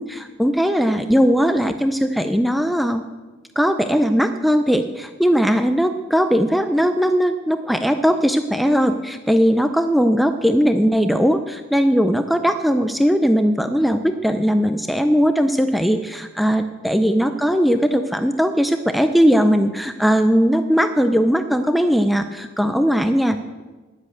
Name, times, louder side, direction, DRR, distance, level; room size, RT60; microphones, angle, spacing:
voice 1, 0.0-3.0 3.6-23.6, equal, ahead, 8 dB, 0.4 m, -19 dB
10.5 x 9.9 x 7.8 m, 1.3 s
head